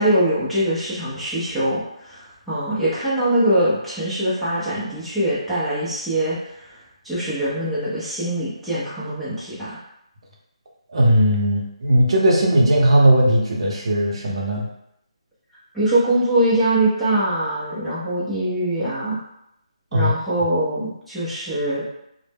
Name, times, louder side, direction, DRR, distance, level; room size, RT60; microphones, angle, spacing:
voice 1, 0.0-6.8 7.0-9.8 15.7-19.2 19.9-21.8, right 1 dB, ahead, -14 dB, 0.5 m, -23 dB
voice 2, 10.9-14.6 19.9-20.1, equal, 55° right, -2 dB, 0.6 m, -17 dB
2.0 x 2.0 x 3.3 m, 0.82 s
figure-of-eight pair, 160°, 3 cm